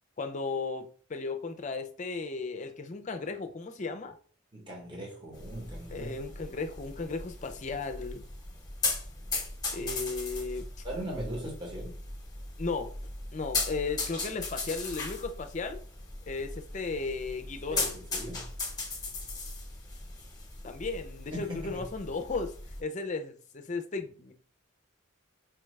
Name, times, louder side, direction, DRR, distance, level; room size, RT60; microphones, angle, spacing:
voice 1, 0.2-4.2 5.9-8.2 9.7-10.7 12.6-12.9 13.3-15.8 16.3-17.9 20.6-22.5 22.8-24.3, left 4 dB, 35° left, 0.4 m, -35 dB
voice 2, 4.5-6.1 10.8-11.9 17.7-18.5 21.3-21.9, right 1 dB, 20° right, 0.9 m, -39 dB
sound 1, 5.3-22.8, left 3 dB, 15° left, 0.9 m, -38 dB
4.7 x 2.3 x 3.1 m
head